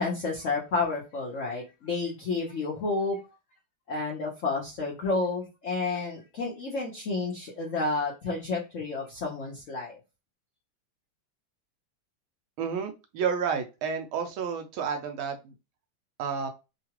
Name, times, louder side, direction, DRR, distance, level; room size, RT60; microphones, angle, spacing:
voice 1, 0.0-3.2 3.9-10.0, left 3 dB, 60° left, -3 dB, 0.8 m, -30 dB
voice 2, 12.6-15.5 16.2-16.5, right 6 dB, 80° right, 5 dB, 1.5 m, -30 dB
3.8 x 2.3 x 2.9 m, 0.27 s
omnidirectional pair, 2.3 m